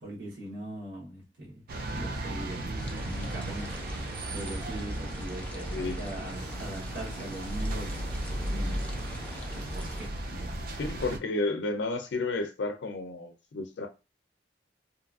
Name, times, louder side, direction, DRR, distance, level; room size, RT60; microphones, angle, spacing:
voice 1, 0.0-1.6 1.9-2.7 3.0-8.1 8.5-9.0 9.5-10.6, right 1 dB, 80° right, 1.1 m, -41 dB
sound 1, 1.7-11.2, right 1 dB, 60° right, 0.4 m, -35 dB
sound 2, 2.7-10.1, left 2 dB, 10° left, 0.4 m, -47 dB
voice 2, 10.7-13.9, left 2 dB, 80° left, 0.4 m, -32 dB
2.8 x 2.4 x 2.3 m
head